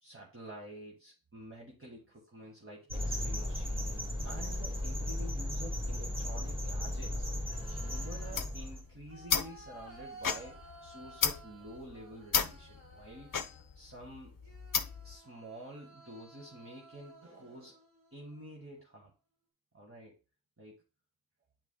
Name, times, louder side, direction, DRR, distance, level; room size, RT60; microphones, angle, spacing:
voice 1, 0.0-7.3 7.7-13.3 13.7-14.3 15.0-17.8 18.1-19.1 19.7-20.2 20.6-20.7, right 1 dB, 35° right, -2 dB, 1.6 m, -49 dB
sound 1, 1.9-2.7 3.7-5.0 5.3-6.0 7.0-13.9 14.4-18.7, right 1 dB, 60° right, 2.6 m, -56 dB
sound 2, 2.9-8.8, left 1 dB, 15° right, 1.8 m, -35 dB
sound 3, 8.2-15.1, left 7 dB, 60° left, 0.6 m, -35 dB
9.1 x 4.7 x 2.2 m, 0.33 s
wide cardioid pair, 80°, 36 cm